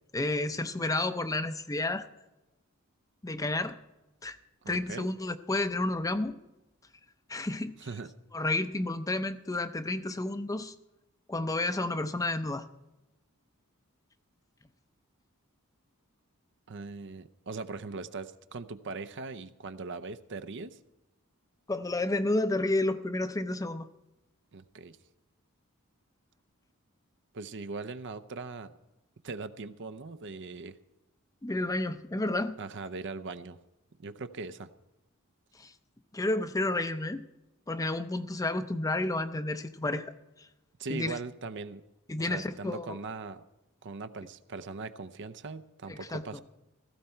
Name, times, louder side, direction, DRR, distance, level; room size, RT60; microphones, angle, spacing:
voice 1, 0.1-2.1 3.2-3.7 4.2-4.4 4.7-6.4 7.3-7.8 8.3-10.7 11.3-12.6 21.7-23.9 31.4-32.6 35.6-35.7 36.1-37.2 37.7-40.1 40.4-40.5 40.9-41.2 42.1-43.0 45.9-46.4, left 2 dB, 15° left, 10 dB, 0.6 m, -31 dB
voice 2, 4.6-5.1 7.8-8.1 16.7-20.8 24.5-25.0 27.3-28.8 29.2-30.8 32.6-33.6 34.0-34.7 40.8-41.8 42.2-43.4 43.8-46.4, right 4 dB, 55° right, 12 dB, 0.7 m, -40 dB
16.5 x 15.0 x 4.4 m, 0.98 s
head